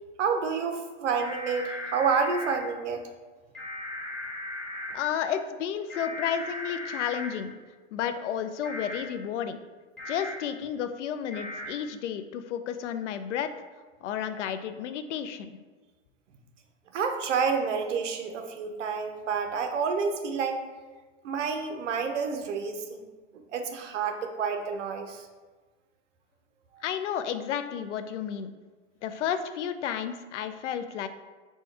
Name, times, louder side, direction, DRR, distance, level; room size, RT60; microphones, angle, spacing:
voice 1, 0.2-3.1 16.9-20.6 21.2-23.1 23.3-25.3 26.7-26.8, right 5 dB, 80° right, 6 dB, 0.7 m, -29 dB
sound 1, 1.2-2.6 3.5-4.9 5.9-7.3 8.6-9.0 10.0-10.3 11.3-11.7, left 2 dB, ahead, 1.1 m, -37 dB
voice 2, 4.9-7.6 7.9-9.6 10.1-13.5 14.0-15.6 26.8-28.5 29.0-31.1, left 8 dB, 75° left, 10 dB, 0.5 m, -32 dB
4.3 x 2.3 x 4.5 m, 1.3 s
hypercardioid pair, 150°, 36 cm